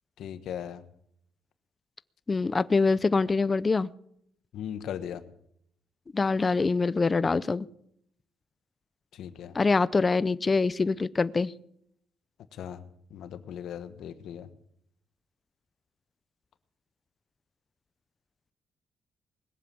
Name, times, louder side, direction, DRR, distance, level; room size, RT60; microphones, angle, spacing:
voice 1, 0.2-0.8 4.5-5.2 9.1-9.6 12.5-12.8 13.1-14.5, left 9 dB, 75° left, 10 dB, 1.3 m, -38 dB
voice 2, 2.3-3.9 6.1-7.7 9.5-11.5, left 4 dB, 30° left, 16 dB, 0.6 m, -24 dB
21.0 x 7.5 x 8.4 m, 0.72 s
cardioid pair, 90°, 0 cm